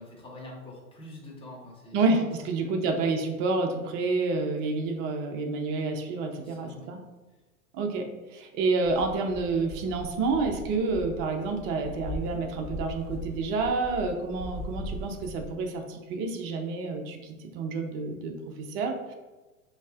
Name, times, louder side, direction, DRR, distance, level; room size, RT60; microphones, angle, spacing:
voice 1, 0.0-2.3 2.6-2.9 6.4-6.9, left 1 dB, 10° left, -2 dB, 0.9 m, -46 dB
voice 2, 1.9-7.0 7.7-19.1, right 3 dB, 25° right, 4 dB, 0.5 m, -29 dB
sound 1, 8.8-15.5, equal, 55° left, 1.0 m, -39 dB
5.2 x 2.8 x 2.4 m, 1.2 s
figure-of-eight pair, 100°, 45 cm